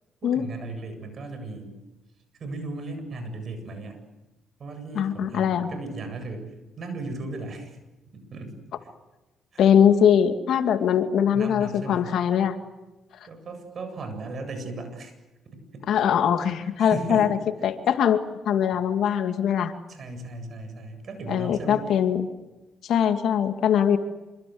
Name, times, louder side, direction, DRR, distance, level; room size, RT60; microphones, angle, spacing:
voice 1, 0.2-1.8 2.4-4.0 4.6-6.5 6.8-7.8 8.1-8.6 9.5-9.6 11.1-12.1 13.2-15.1 15.7-15.8 16.8-17.3 19.9-21.9, right 2 dB, 50° right, 8 dB, 7.9 m, -36 dB
voice 2, 4.9-5.7 9.6-12.6 15.9-17.3 17.6-19.7 21.3-22.3 22.8-24.0, left 8 dB, 75° left, 7 dB, 2.4 m, -22 dB
27.0 x 24.5 x 8.0 m, 1.1 s
cardioid pair, 90°, 0 cm